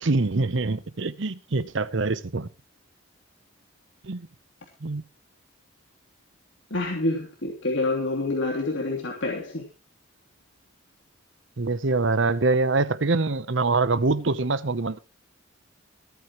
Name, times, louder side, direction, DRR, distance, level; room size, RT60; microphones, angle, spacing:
voice 1, 0.0-2.5 4.0-4.3 4.8-5.0 11.6-15.0, right 3 dB, 65° right, 0.8 m, -24 dB
voice 2, 6.7-9.6, left 2 dB, 65° left, 3.2 m, -27 dB
24.0 x 9.3 x 3.1 m
head